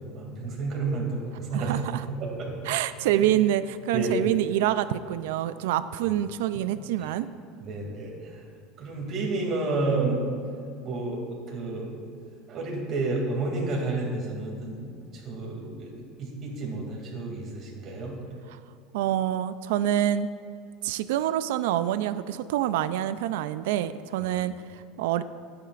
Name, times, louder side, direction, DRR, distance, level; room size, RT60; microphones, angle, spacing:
voice 1, 0.0-2.5 3.1-3.3 3.9-4.1 6.0-6.1 7.0-7.1 7.6-8.4 8.8-10.3 10.8-12.0 12.5-18.2 24.2-24.3, right 3 dB, 30° right, -2 dB, 2.5 m, -31 dB
voice 2, 1.5-2.0 2.7-7.3 18.5-18.6 18.9-20.3 20.8-25.2, right 12 dB, 85° right, 13 dB, 0.4 m, -26 dB
23.0 x 8.9 x 2.5 m, 2.5 s
cardioid pair, 170°, 0 cm